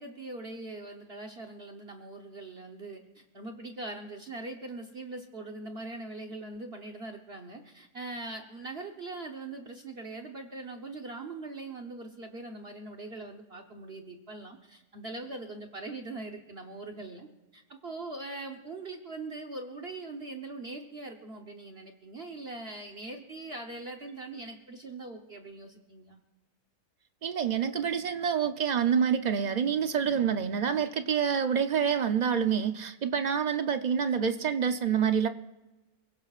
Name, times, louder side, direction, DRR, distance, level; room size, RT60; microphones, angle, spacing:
voice 1, 0.0-17.3 17.5-26.2, right 2 dB, 45° right, 3 dB, 1.2 m, -41 dB
voice 2, 27.2-35.3, right 7 dB, 65° right, 8 dB, 0.4 m, -27 dB
29.5 x 16.5 x 2.4 m, 1.1 s
omnidirectional pair, 1.6 m